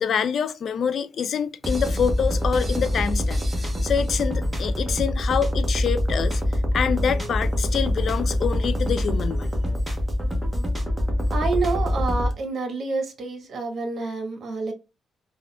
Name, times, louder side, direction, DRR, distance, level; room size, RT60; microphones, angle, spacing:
voice 1, 0.0-3.4 3.8-6.4 6.7-9.5, left 7 dB, 55° left, 0.3 m, -26 dB
sound 1, 1.6-12.3, left 1 dB, 5° right, 0.9 m, -24 dB
voice 2, 11.3-14.7, right 4 dB, 55° right, 1.1 m, -28 dB
3.5 x 2.3 x 2.2 m
cardioid pair, 90°, 0 cm